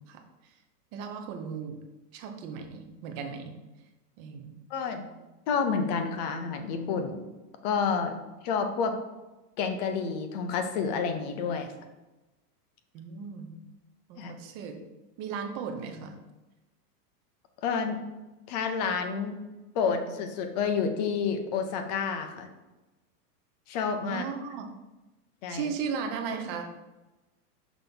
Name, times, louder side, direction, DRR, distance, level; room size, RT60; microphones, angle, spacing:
voice 1, 0.1-0.5 0.9-1.8 2.1-3.5 4.2-4.5 12.9-13.5 14.1-14.8 15.2-16.2 24.0-24.7 25.5-26.8, right 6 dB, 25° right, 4 dB, 0.5 m, -36 dB
voice 2, 4.7-5.1 5.5-7.2 7.6-8.2 8.4-8.9 9.6-11.7 14.2-14.3 17.6-18.0 18.5-19.4 19.7-22.5 23.7-24.3 25.4-25.7, left 5 dB, 30° left, 6 dB, 0.5 m, -29 dB
6.0 x 3.4 x 5.3 m, 1.1 s
supercardioid pair, 150°, 47 cm